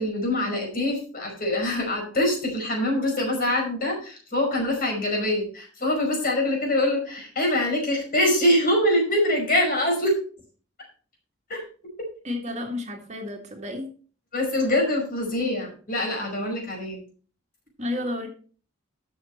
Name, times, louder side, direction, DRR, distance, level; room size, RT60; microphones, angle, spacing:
voice 1, 0.0-10.2 11.5-11.6 14.3-17.0, left 1 dB, 45° left, 1 dB, 5.2 m, -24 dB
voice 2, 12.2-13.9 17.8-18.3, left 2 dB, 35° right, 2 dB, 2.1 m, -31 dB
13.0 x 6.6 x 4.4 m, 0.40 s
head